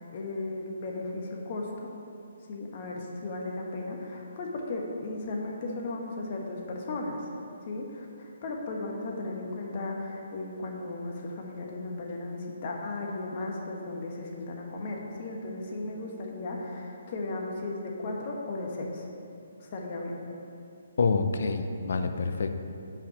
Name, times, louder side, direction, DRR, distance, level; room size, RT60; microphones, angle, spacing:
voice 1, 0.0-1.9 2.5-7.3 7.7-19.1 19.6-20.2, left 2 dB, 45° left, 0 dB, 1.2 m, -36 dB
voice 2, 21.0-22.5, left 4 dB, 65° left, 7 dB, 0.6 m, -27 dB
5.7 x 5.0 x 6.6 m, 2.6 s
hypercardioid pair, 150°, 0 cm